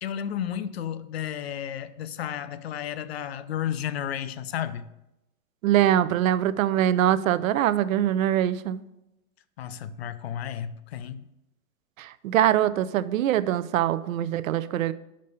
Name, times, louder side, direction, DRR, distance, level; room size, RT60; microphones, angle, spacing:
voice 1, 0.0-4.9 9.6-11.3, left 9 dB, 50° left, 0.4 m, -32 dB
voice 2, 5.6-8.8 12.0-14.9, right 11 dB, 75° right, 0.5 m, -23 dB
5.5 x 5.2 x 6.6 m
supercardioid pair, 175°, 41 cm